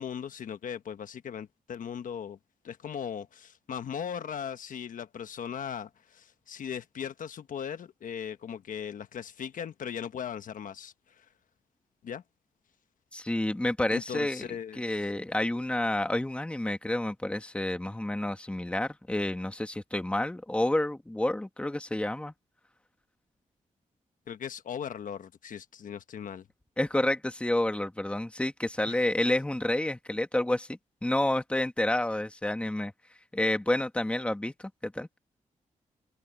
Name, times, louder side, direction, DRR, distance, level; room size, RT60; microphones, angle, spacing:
voice 1, 0.0-2.4 2.6-11.3 12.0-12.2 13.9-15.0 24.3-26.5 28.9-29.1, left 8 dB, 80° left, 1.2 m, -38 dB
voice 2, 13.1-14.5 14.8-22.3 26.8-32.9 33.3-35.1, left 1 dB, 10° left, 1.7 m, -29 dB
wide cardioid pair, 125°, 14 cm